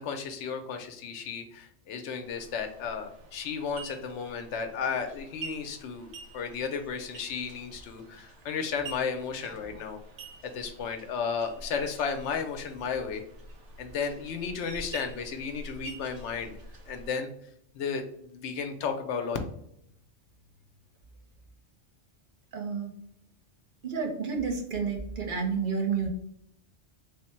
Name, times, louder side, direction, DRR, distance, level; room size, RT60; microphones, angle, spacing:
voice 1, 0.0-10.0 10.4-13.2 13.8-16.6 16.9-17.3 17.7-19.4, left 6 dB, 80° left, 6 dB, 0.9 m, -34 dB
sound 1, 2.2-17.1, right 3 dB, 85° right, 1.0 m, -47 dB
voice 2, 22.5-22.9 23.8-26.1, right 5 dB, 55° right, 3 dB, 0.7 m, -30 dB
3.3 x 2.1 x 4.2 m, 0.72 s
omnidirectional pair, 1.2 m